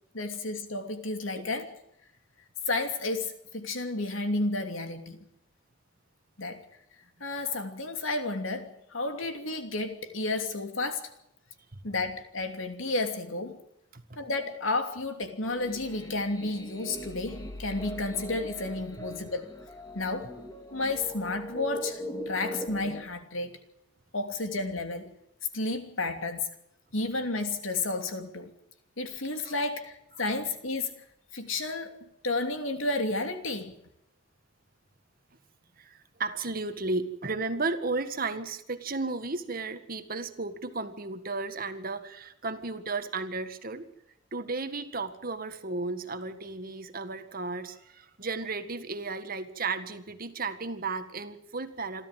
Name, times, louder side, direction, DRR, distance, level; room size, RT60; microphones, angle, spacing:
voice 1, 0.1-1.7 2.7-5.2 6.4-6.6 7.2-11.1 11.8-13.6 14.2-19.5 19.9-20.3 20.7-23.5 24.1-25.1 25.5-26.5 26.9-28.5 29.0-30.9 31.3-31.9 32.2-33.8, left 2 dB, 80° left, 2.9 m, -32 dB
sound 1, 15.4-23.0, equal, 20° left, 2.6 m, -40 dB
voice 2, 35.8-43.9 44.3-52.1, right 3 dB, 45° right, 1.7 m, -34 dB
27.5 x 13.0 x 7.5 m
head